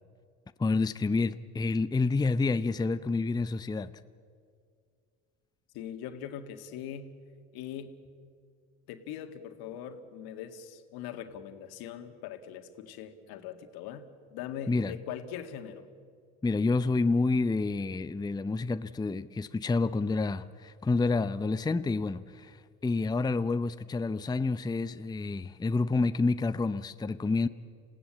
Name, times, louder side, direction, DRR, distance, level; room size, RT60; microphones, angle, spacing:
voice 1, 0.6-3.9 14.7-14.9 16.4-27.5, left 3 dB, 10° left, 12 dB, 0.6 m, -28 dB
voice 2, 5.7-7.1 7.5-8.0 8.9-15.8, left 9 dB, 65° left, 7 dB, 1.9 m, -41 dB
27.5 x 16.5 x 8.6 m, 2.2 s
hypercardioid pair, 65°, 39 cm